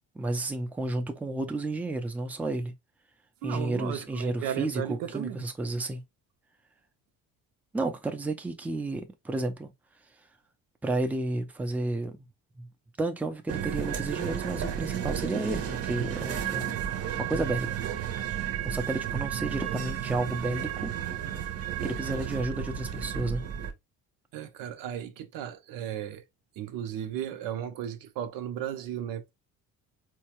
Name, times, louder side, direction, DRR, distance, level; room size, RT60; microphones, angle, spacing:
voice 1, 0.1-2.7 3.4-6.0 7.7-9.7 10.8-12.3 12.6-12.7 13.0-16.7 17.3-17.7 18.6-20.9 21.8-23.4, right 2 dB, 5° right, 0.5 m, -31 dB
voice 2, 3.4-5.4 24.3-26.2 26.6-29.3, right 10 dB, 90° right, 0.7 m, -35 dB
sound 1, 13.5-23.7, right 9 dB, 45° right, 0.7 m, -32 dB
4.4 x 2.3 x 2.9 m
cardioid pair, 135°, 33 cm